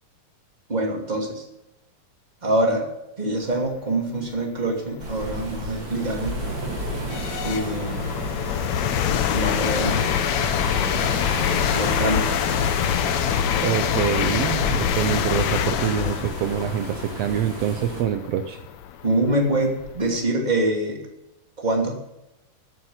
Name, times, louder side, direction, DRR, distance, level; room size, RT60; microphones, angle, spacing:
voice 1, 0.7-1.4 2.4-2.9 3.2-6.4 7.4-8.0 9.3-10.1 11.7-12.4 19.0-21.1 21.6-22.0, right 1 dB, 15° right, 0 dB, 2.3 m, -24 dB
sound 1, 4.7-4.8 5.4-20.2, left 9 dB, 70° left, 1.9 m, -25 dB
sound 2, 5.0-18.0, right 1 dB, 35° right, 3.4 m, -33 dB
voice 2, 13.6-18.6, right 10 dB, 80° right, 8 dB, 1.4 m, -25 dB
15.0 x 8.9 x 5.8 m, 0.91 s
omnidirectional pair, 3.8 m